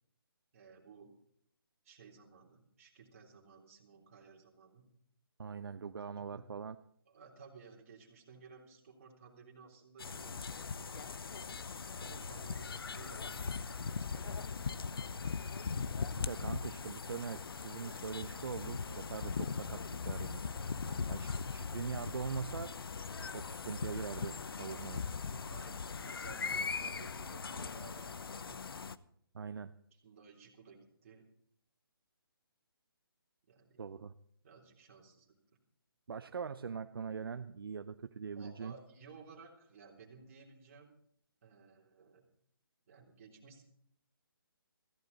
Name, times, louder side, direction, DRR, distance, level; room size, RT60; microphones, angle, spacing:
voice 1, 0.5-1.1 1.8-4.8 6.2-6.5 7.0-11.1 11.9-14.8 15.2-15.3 20.8-21.5 25.5-28.7 29.9-31.3 33.5-33.9 34.4-35.3 38.3-40.9 41.4-42.2 42.9-43.6, right 5 dB, 35° right, 0 dB, 3.4 m, -57 dB
voice 2, 5.4-6.8 16.2-20.5 21.1-22.7 23.3-25.1 29.3-29.7 33.8-34.1 36.1-38.7, right 6 dB, 65° right, 10 dB, 0.7 m, -42 dB
sound 1, 10.0-28.9, left 5 dB, 70° left, 0.8 m, -40 dB
16.5 x 15.0 x 4.0 m, 0.67 s
hypercardioid pair, 165°, 13 cm